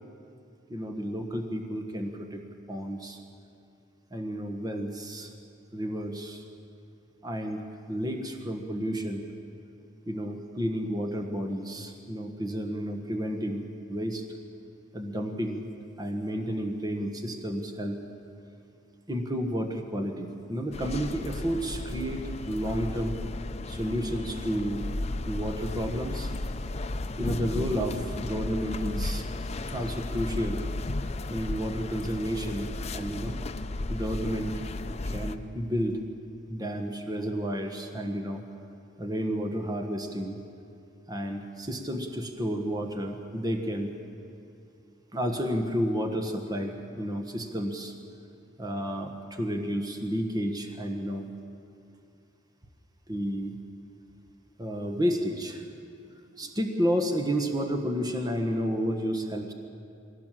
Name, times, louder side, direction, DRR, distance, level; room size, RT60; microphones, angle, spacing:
voice 1, 0.7-2.4 2.7-3.2 4.1-5.3 5.7-6.4 7.2-9.2 10.1-14.2 14.9-15.7 16.0-18.0 19.1-23.2 23.7-24.8 25.3-26.3 27.2-29.2 29.7-30.6 31.3-33.4 33.9-34.5 35.1-36.0 36.5-38.4 39.0-40.4 41.1-43.9 45.1-47.9 48.6-51.3 53.1-53.6 54.6-55.6 56.4-59.5, equal, 20° right, 4 dB, 1.3 m, -31 dB
sound 1, 20.7-35.4, left 2 dB, 35° left, 0.6 m, -34 dB
21.5 x 17.5 x 7.6 m, 2.5 s
head